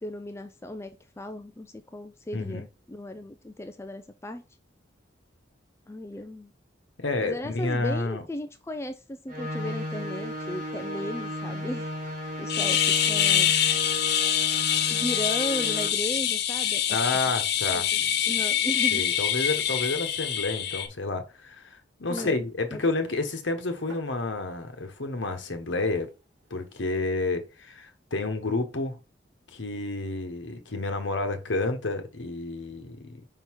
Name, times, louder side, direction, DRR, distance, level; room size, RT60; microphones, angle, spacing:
voice 1, 0.0-4.4 5.9-6.5 7.2-11.9 12.4-13.5 14.9-17.0 17.7-18.0 18.3-19.0 22.1-22.4 22.7-22.8, left 1 dB, 15° left, 0.4 m, -36 dB
voice 2, 2.3-2.6 7.0-8.2 16.9-17.9 18.9-26.1 26.5-29.0 29.5-33.2, left 3 dB, 80° left, 1.1 m, -30 dB
sound 1, 9.3-15.9, equal, 50° right, 1.6 m, -34 dB
sound 2, 12.5-20.9, left 10 dB, 60° left, 0.7 m, -25 dB
sound 3, 22.2-23.0 23.3-27.0, right 1 dB, 80° right, 2.2 m, -52 dB
5.4 x 3.8 x 4.6 m
head